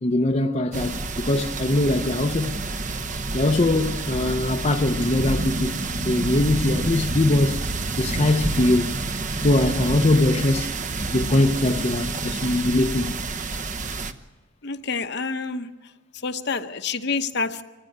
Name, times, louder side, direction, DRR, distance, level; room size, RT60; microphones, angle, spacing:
voice 1, 0.0-2.6 3.3-5.7 6.0-7.6 8.0-8.9 9.4-10.7 11.1-13.2, left 1 dB, 35° left, 0.7 m, -22 dB
sound 1, 0.7-14.1, right 3 dB, 40° right, 0.9 m, -28 dB
voice 2, 14.6-15.7 16.2-17.6, left 4 dB, 55° left, 1.0 m, -27 dB
25.0 x 15.0 x 9.3 m
head